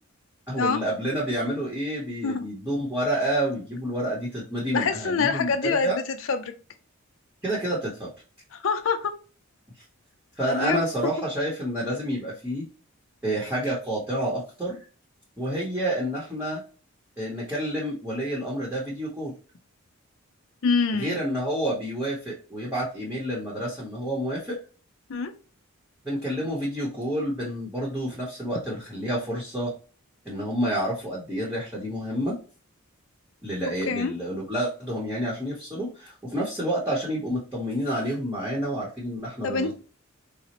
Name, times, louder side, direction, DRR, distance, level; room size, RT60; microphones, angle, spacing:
voice 1, 0.5-6.0 7.4-8.1 10.4-12.7 13.2-14.8 15.4-16.6 17.2-19.3 20.9-24.6 26.0-29.7 30.2-32.4 33.4-39.7, right 1 dB, 10° right, -6 dB, 0.8 m, -29 dB
voice 2, 4.7-6.5 8.5-9.1 10.5-11.1 20.6-21.2 25.1-25.3 33.9-34.1 39.4-39.7, left 5 dB, 65° left, 7 dB, 0.5 m, -26 dB
4.0 x 2.0 x 2.8 m, 0.37 s
head